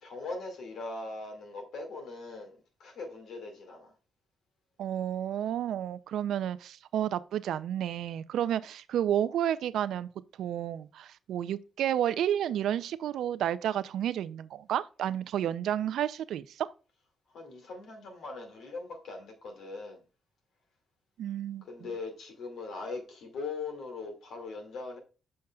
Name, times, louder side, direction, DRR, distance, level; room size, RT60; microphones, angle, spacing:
voice 1, 0.0-3.9 17.3-20.0 21.6-25.0, left 3 dB, 75° left, 2.1 m, -40 dB
voice 2, 4.8-10.1 10.4-16.7 21.2-21.7, right 10 dB, 80° right, 0.4 m, -31 dB
6.8 x 6.4 x 2.3 m
supercardioid pair, 55°, 0 cm